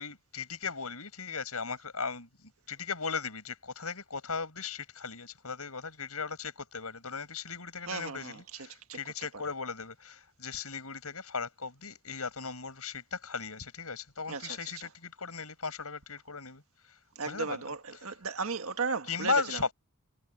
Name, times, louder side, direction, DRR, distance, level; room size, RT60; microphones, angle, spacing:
voice 1, 0.0-16.6 17.2-17.6 19.1-19.7, left 5 dB, 85° left, 6.1 m, -37 dB
voice 2, 7.9-8.4 8.9-9.0 14.3-14.9 17.2-19.6, right 4 dB, 70° right, 1.8 m, -35 dB
head